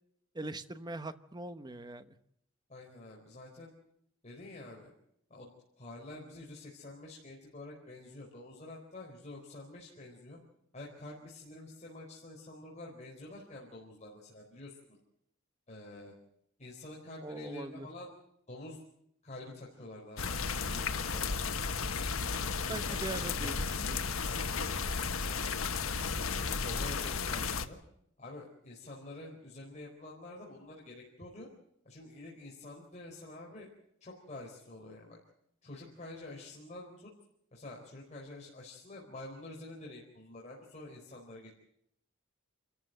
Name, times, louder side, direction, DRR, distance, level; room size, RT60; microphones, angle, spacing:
voice 1, 0.3-2.1 17.2-17.9 22.7-24.1, right 2 dB, 20° right, 11 dB, 1.1 m, -41 dB
voice 2, 2.7-3.7 4.2-4.9 5.3-5.5 5.8-10.4 10.7-14.8 15.7-16.1 16.6-18.1 18.5-18.8 19.2-21.5 22.0-23.5 24.3-24.7 25.3-25.5 25.9-27.8 28.2-31.5 31.8-33.7 34.0-35.2 35.6-37.1 37.5-41.5, left 2 dB, 35° left, -3 dB, 4.3 m, -48 dB
sound 1, 20.2-27.7, left 5 dB, 85° left, 1.3 m, -34 dB
28.5 x 14.0 x 7.9 m, 0.76 s
head